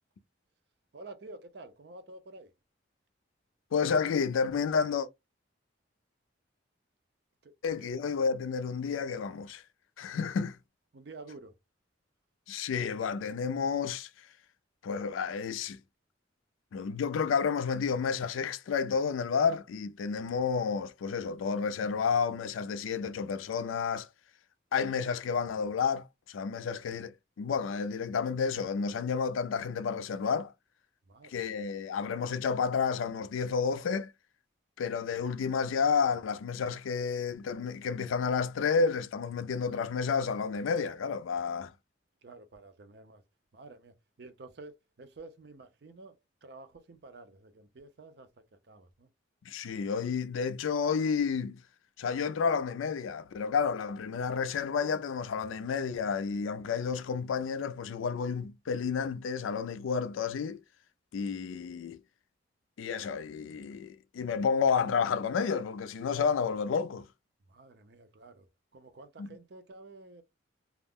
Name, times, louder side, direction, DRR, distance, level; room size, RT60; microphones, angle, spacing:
voice 1, 0.9-2.5 7.4-7.9 10.9-11.5 31.1-31.6 42.2-43.2 43.5-49.1 67.5-70.2, right 3 dB, 55° right, 0.5 m, -50 dB
voice 2, 3.7-5.1 7.6-9.6 10.0-10.6 12.5-14.1 14.8-15.8 16.7-24.1 24.7-30.5 31.3-34.1 34.8-41.7 49.5-51.6 52.0-60.6 61.1-62.0 62.8-67.0 69.2-69.3, left 6 dB, 90° left, 0.4 m, -31 dB
2.4 x 2.0 x 3.4 m
head